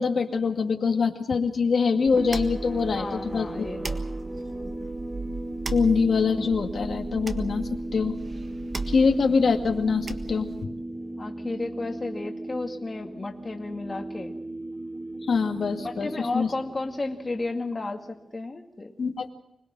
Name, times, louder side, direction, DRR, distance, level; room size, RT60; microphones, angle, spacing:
voice 1, 0.0-3.7 5.7-7.6 7.9-8.2 8.9-10.7 15.3-16.1 16.3-16.5 19.0-19.3, left 5 dB, 60° left, 3 dB, 2.1 m, -24 dB
sound 1, 2.0-18.3, right 1 dB, 15° right, 1.8 m, -36 dB
sound 2, 2.1-10.6, right 3 dB, 40° right, 1.5 m, -37 dB
voice 2, 2.9-4.0 4.7-4.9 11.2-14.3 15.8-18.9, left 2 dB, 25° left, 2 dB, 2.0 m, -33 dB
25.5 x 21.0 x 6.2 m, 0.78 s
wide cardioid pair, 120°, 0 cm